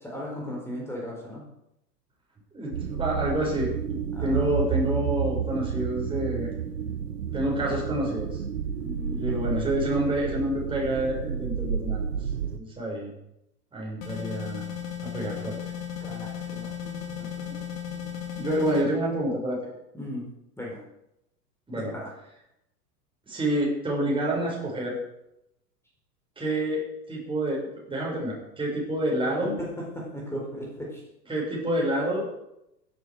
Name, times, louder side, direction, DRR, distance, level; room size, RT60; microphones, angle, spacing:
voice 1, 0.0-1.5 4.1-4.6 8.8-9.4 16.0-17.5 17.9-18.1 19.9-20.2 20.6-20.8 21.7-22.1 29.4-31.0, equal, 5° left, -3 dB, 4.5 m, -37 dB
voice 2, 2.5-6.5 7.3-8.4 9.1-12.0 12.6-13.1 13.7-14.6 15.0-15.6 17.5-17.6 18.4-19.6 21.7-21.9 23.3-25.0 26.4-29.6 31.3-32.3, right 1 dB, 10° right, -3 dB, 5.9 m, -28 dB
sound 1, 2.7-12.6, right 7 dB, 70° right, 1.2 m, -30 dB
sound 2, 14.0-18.8, left 9 dB, 55° left, 3.3 m, -35 dB
15.5 x 11.0 x 5.0 m, 0.83 s
figure-of-eight pair, 95°, 49 cm